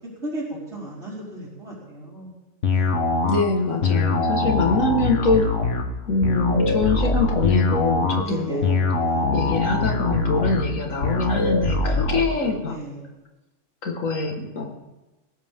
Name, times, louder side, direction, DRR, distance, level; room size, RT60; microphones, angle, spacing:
voice 1, 0.7-2.3 2.7-2.9 8.2-8.7 9.1-9.3 12.1-13.0, right 1 dB, 60° right, -8 dB, 4.9 m, -35 dB
sound 1, 2.6-12.2, left 3 dB, 65° left, 1.7 m, -23 dB
voice 2, 3.3-5.6 6.1-8.9 9.3-12.8 13.8-14.7, left 3 dB, 85° left, 2 dB, 2.1 m, -24 dB
21.0 x 18.0 x 3.7 m, 1.1 s
omnidirectional pair, 1.3 m